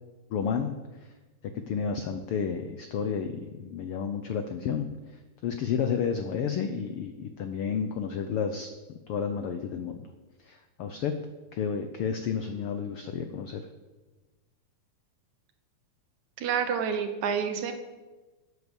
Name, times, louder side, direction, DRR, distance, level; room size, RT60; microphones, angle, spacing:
voice 1, 0.3-0.7 1.0-1.1 1.5-8.7 9.1-10.0 10.4-11.1 11.5-13.6, left 7 dB, 85° left, 8 dB, 1.2 m, -31 dB
voice 2, 16.4-17.7, right 7 dB, 70° right, 7 dB, 2.4 m, -28 dB
11.5 x 8.2 x 7.1 m, 1.2 s
omnidirectional pair, 3.6 m